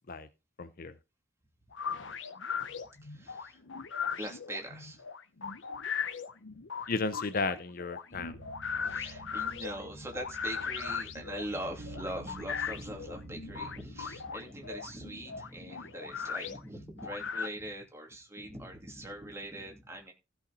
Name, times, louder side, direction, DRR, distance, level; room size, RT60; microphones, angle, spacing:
voice 1, 0.6-1.0 6.9-8.3, left 4 dB, 50° left, 0.6 m, -34 dB
sound 1, 1.7-17.5, left 6 dB, 85° left, 0.9 m, -38 dB
voice 2, 3.0-3.6 4.2-5.0 8.8-20.1, right 1 dB, 15° right, 2.8 m, -42 dB
sound 2, 8.1-15.2, right 1 dB, 55° right, 1.6 m, -49 dB
15.5 x 5.7 x 4.2 m
head